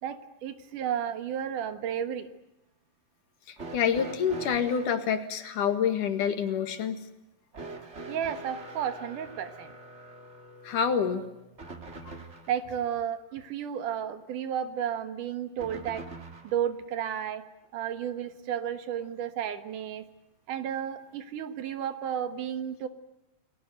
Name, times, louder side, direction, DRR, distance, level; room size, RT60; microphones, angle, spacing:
voice 1, 0.0-2.3 8.1-9.8 12.5-16.1 16.4-17.4 17.7-20.0 20.5-22.9, right 9 dB, 70° right, 10 dB, 2.9 m, -32 dB
voice 2, 3.5-7.0 10.6-11.2, left 7 dB, 70° left, 8 dB, 3.4 m, -27 dB
sound 1, 3.6-5.0 7.5-12.6 15.6-16.6 17.9-18.0 19.0-19.1, right 3 dB, 25° right, 1.9 m, -44 dB
29.5 x 20.5 x 7.9 m, 0.94 s
omnidirectional pair, 3.9 m